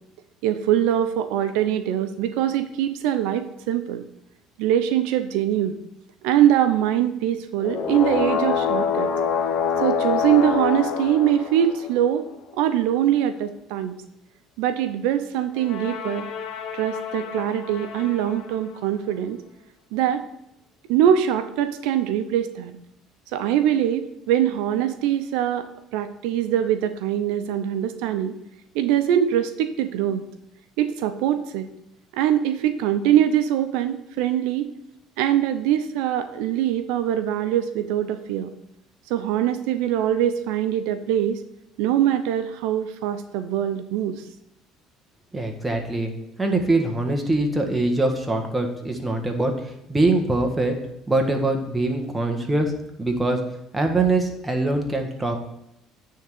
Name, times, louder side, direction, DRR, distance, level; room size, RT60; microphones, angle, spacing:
voice 1, 0.4-4.0 4.6-5.8 6.2-9.1 9.8-12.3 12.5-14.0 14.6-16.3 16.7-19.4 19.9-20.2 20.9-22.8 23.3-25.7 25.9-28.3 28.7-30.2 30.8-31.7 32.1-34.7 35.2-38.5 39.1-41.4 41.8-44.2, right 10 dB, 85° right, 9 dB, 0.6 m, -23 dB
sound 1, 7.6-12.2 15.6-18.4, left 7 dB, 60° left, 0.8 m, -26 dB
voice 2, 45.3-46.1 46.4-50.7 51.1-52.7 53.0-53.4 53.7-55.4, right 2 dB, 10° right, 3 dB, 1.4 m, -23 dB
9.2 x 3.7 x 6.7 m, 0.82 s
cardioid pair, 105°, 0 cm